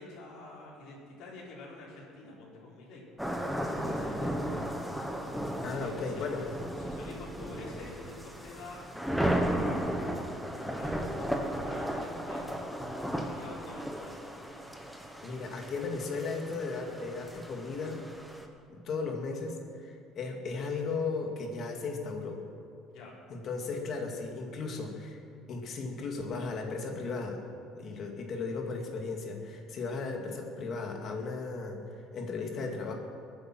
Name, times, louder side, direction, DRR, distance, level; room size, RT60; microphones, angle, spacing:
voice 1, 0.0-3.0 3.6-4.3 5.7-6.5 6.8-8.8 10.8-12.5 13.1-14.1 22.9-23.1, left 2 dB, 60° left, -6 dB, 4.3 m, -47 dB
sound 1, 3.2-18.5, equal, ahead, 1.2 m, -35 dB
voice 2, 5.6-6.5 15.2-18.0 18.7-22.4 23.3-25.2 25.5-27.4 27.8-31.8 32.1-32.9, left 4 dB, 40° left, 2 dB, 2.3 m, -36 dB
22.0 x 9.3 x 6.1 m, 2.6 s
cardioid pair, 160°, 0 cm